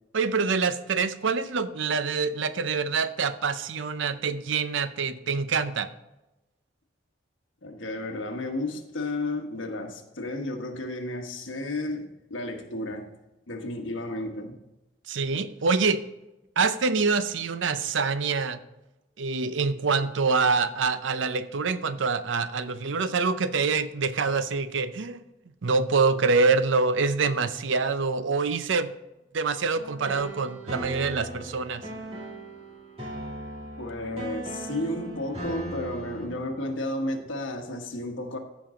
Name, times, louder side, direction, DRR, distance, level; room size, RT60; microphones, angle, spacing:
voice 1, 0.1-5.9 15.1-16.0 16.6-18.6 19.2-25.2 25.6-28.9 29.3-31.8, right 4 dB, 80° right, 12 dB, 0.6 m, -25 dB
voice 2, 7.6-13.1 13.5-14.6 33.8-38.4, left 1 dB, 85° left, 4 dB, 1.3 m, -32 dB
sound 1, 29.7-36.3, right 1 dB, 30° right, 2.5 m, -38 dB
14.5 x 5.4 x 3.7 m, 0.97 s
head